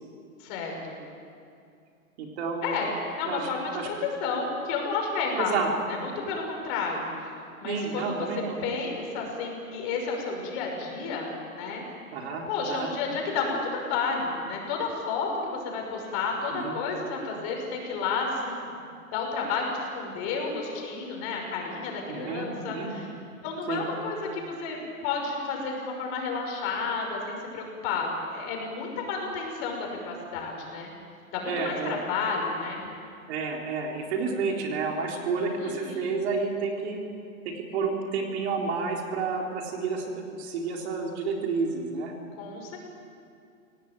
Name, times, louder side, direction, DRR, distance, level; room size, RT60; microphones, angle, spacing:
voice 1, 0.4-1.0 2.6-5.5 5.9-7.3 7.6-8.3 8.6-11.8 12.5-18.6 19.1-23.1 23.4-30.9 31.3-32.8 35.6-36.2 42.4-42.8, left 4 dB, 35° left, 1 dB, 5.9 m, -31 dB
voice 2, 2.2-2.8 3.2-3.5 3.7-3.9 5.4-5.7 7.6-8.6 12.1-12.9 16.5-16.8 22.1-22.9 23.7-23.8 31.4-32.0 33.3-37.0 37.4-42.1, right 4 dB, 50° right, 1 dB, 4.0 m, -30 dB
26.5 x 18.0 x 9.1 m, 2.5 s
hypercardioid pair, 155°, 43 cm